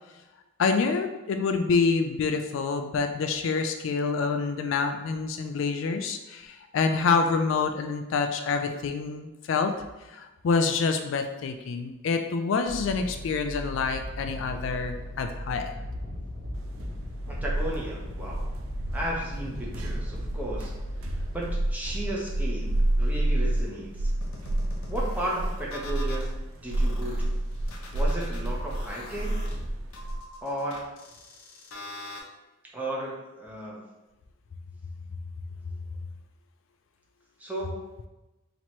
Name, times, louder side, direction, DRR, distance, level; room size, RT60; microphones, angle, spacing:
voice 1, 0.6-9.7 10.1-15.7, left 4 dB, 65° left, 6 dB, 0.3 m, -27 dB
sound 1, 12.7-21.5, equal, 60° right, 1.2 m, -37 dB
sound 2, 16.7-30.2, right 1 dB, 80° right, 0.5 m, -29 dB
voice 2, 17.4-18.5 18.9-20.7 21.0-24.1 24.9-26.3 26.6-27.3 27.9-29.4 30.4-30.8 32.7-33.8 37.4-37.9, right 1 dB, 10° right, -4 dB, 0.7 m, -34 dB
sound 3, 24.2-26.3 26.7-32.2, left 1 dB, 85° left, 0.7 m, -43 dB
3.0 x 2.9 x 4.3 m, 1.1 s
head